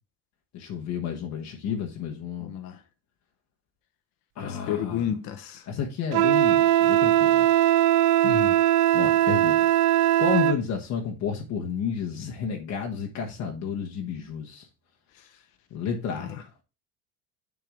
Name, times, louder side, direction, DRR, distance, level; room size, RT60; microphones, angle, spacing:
voice 1, 0.5-2.5 4.4-5.0 5.7-7.5 8.9-9.5 10.2-14.6 15.7-16.4, left 7 dB, 50° left, 1.3 m, -31 dB
voice 2, 2.4-2.8 4.4-5.7 8.2-8.6 15.1-15.3 16.1-16.4, left 9 dB, 70° left, 1.2 m, -32 dB
Wind instrument woodwind instrument, 6.1-10.6, right 13 dB, 75° right, 0.6 m, -20 dB
7.3 x 4.6 x 3.6 m
cardioid pair, 130°, 35 cm